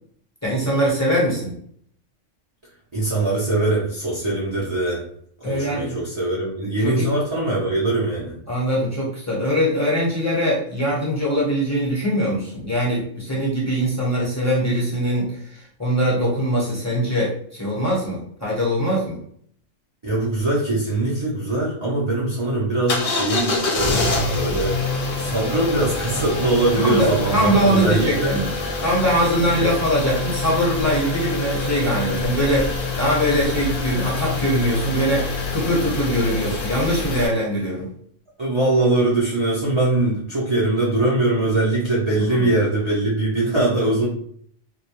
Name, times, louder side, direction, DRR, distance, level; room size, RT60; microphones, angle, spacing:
voice 1, 0.4-1.5 5.4-6.0 6.8-7.1 8.5-19.2 26.8-28.5 28.8-37.9 42.3-42.5, equal, 15° left, -6 dB, 0.7 m, -22 dB
voice 2, 2.9-5.0 5.4-8.4 20.0-24.8 25.2-28.4 38.4-44.1, right 2 dB, 45° right, -6 dB, 0.4 m, -22 dB
sound 1, 22.9-37.3, left 2 dB, 55° left, 0.7 m, -26 dB
2.2 x 2.1 x 2.8 m, 0.62 s
omnidirectional pair, 1.2 m